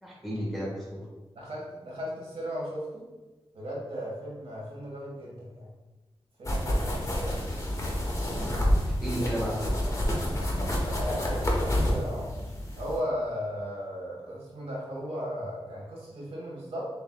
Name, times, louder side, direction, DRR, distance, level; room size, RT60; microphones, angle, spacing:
voice 1, 0.0-1.0 8.8-9.8, equal, ahead, -5 dB, 1.3 m, -33 dB
voice 2, 1.3-3.0 3.5-5.7 6.4-7.4 11.0-12.3 12.8-16.8, equal, 70° right, -4 dB, 1.3 m, -36 dB
sound 1, 6.4-13.0, equal, 30° left, 0.8 m, -28 dB
6.7 x 2.7 x 2.2 m, 1.1 s
wide cardioid pair, 105°, 10 cm